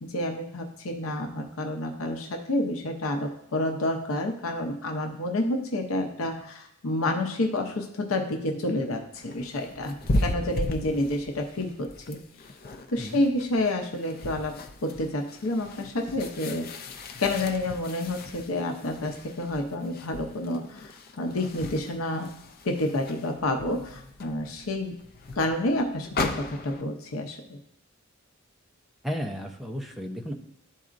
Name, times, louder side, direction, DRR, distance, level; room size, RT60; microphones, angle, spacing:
voice 1, 0.0-12.2 12.9-16.7 17.2-22.3 22.6-24.9 25.3-27.6, left 1 dB, 85° left, 3 dB, 0.7 m, -29 dB
sound 1, 9.1-26.8, left 2 dB, 45° left, 0.6 m, -36 dB
voice 2, 10.0-10.4 13.0-13.2 29.0-30.3, equal, ahead, 1 dB, 0.7 m, -34 dB
12.0 x 4.1 x 2.5 m, 0.76 s
head